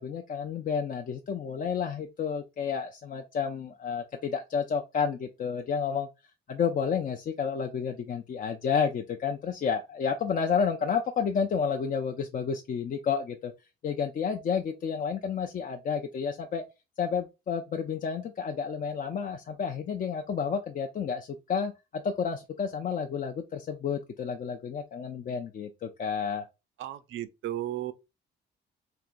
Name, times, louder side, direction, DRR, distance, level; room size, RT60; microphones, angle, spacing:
voice 1, 0.0-6.1 6.5-13.5 13.8-16.6 17.0-26.4, left 6 dB, 45° left, 0.4 m, -30 dB
voice 2, 26.8-27.9, right 13 dB, 75° right, 0.5 m, -34 dB
3.5 x 2.9 x 2.5 m
cardioid pair, 90°, 20 cm